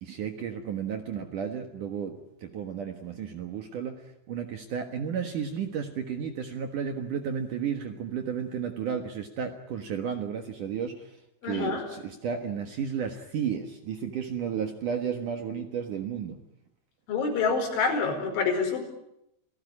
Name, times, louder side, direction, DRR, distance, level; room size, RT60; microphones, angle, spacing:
voice 1, 0.0-11.2 11.4-16.4, right 7 dB, 60° right, 6 dB, 2.4 m, -33 dB
voice 2, 11.4-11.9 17.1-18.8, left 5 dB, 80° left, 3 dB, 7.3 m, -27 dB
29.0 x 18.0 x 9.8 m, 0.82 s
omnidirectional pair, 5.4 m